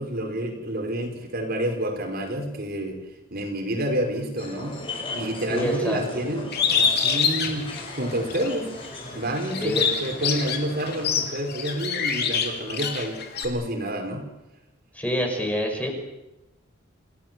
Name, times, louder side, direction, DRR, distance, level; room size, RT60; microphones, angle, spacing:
voice 1, 0.0-3.0 3.3-4.8 5.1-8.7 9.1-14.3, right 1 dB, 50° right, 3 dB, 5.1 m, -29 dB
sound 1, 4.4-11.3, left 2 dB, 25° left, 6.8 m, -38 dB
voice 2, 5.5-6.2 9.6-9.9 14.9-15.9, equal, 5° left, 2 dB, 5.7 m, -26 dB
Bird, 6.5-8.5 8.9-13.4, left 6 dB, 55° left, 4.1 m, -25 dB
28.5 x 18.0 x 7.7 m, 0.97 s
head